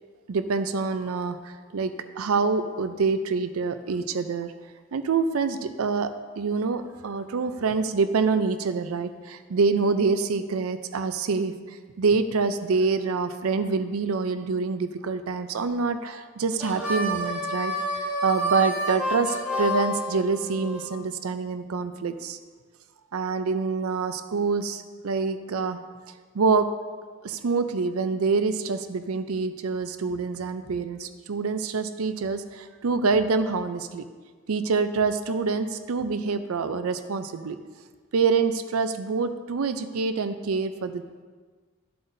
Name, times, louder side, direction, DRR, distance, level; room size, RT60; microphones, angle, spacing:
voice 1, 0.3-4.5 4.9-22.4 23.1-25.8 26.3-26.7 27.2-34.0 34.5-37.6 38.1-41.2, right 4 dB, 85° right, 10 dB, 0.5 m, -26 dB
Harmonica, 16.6-20.8, equal, 5° right, 2.1 m, -29 dB
12.0 x 7.7 x 2.6 m, 1.5 s
head